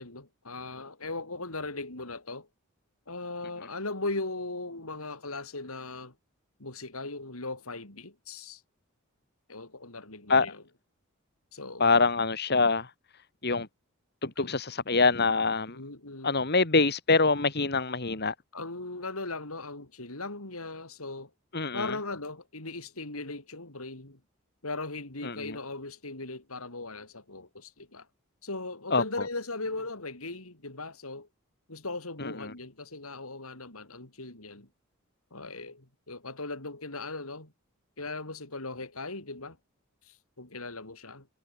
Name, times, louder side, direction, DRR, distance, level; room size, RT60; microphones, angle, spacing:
voice 1, 0.0-2.5 3.1-6.1 6.6-8.6 9.5-10.6 11.5-11.9 14.4-14.6 15.7-16.5 18.5-21.3 21.7-24.2 24.6-28.1 28.4-31.3 31.7-34.7 35.3-37.5 38.0-39.6 40.0-41.3, left 2 dB, 90° left, 5.0 m, -38 dB
voice 2, 11.8-12.9 13.4-13.7 14.2-15.8 16.2-18.3 21.5-21.9 25.2-25.6 28.9-29.0 32.2-32.5, left 4 dB, 50° left, 2.4 m, -25 dB
head